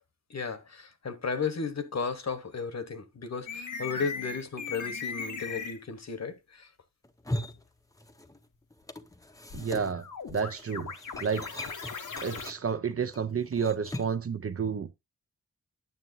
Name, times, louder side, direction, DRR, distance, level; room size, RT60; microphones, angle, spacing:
voice 1, 0.3-6.7, left 5 dB, 60° left, 1.1 m, -34 dB
sound 1, 3.5-5.8 9.5-12.5, left 5 dB, 85° left, 1.1 m, -38 dB
sound 2, 7.0-8.5 8.7-14.3, left 1 dB, 10° left, 0.6 m, -40 dB
voice 2, 9.5-10.0 10.3-10.9 11.2-11.5 12.2-14.9, right 6 dB, 50° right, 0.6 m, -30 dB
9.3 x 7.0 x 2.6 m
wide cardioid pair, 110°, 30 cm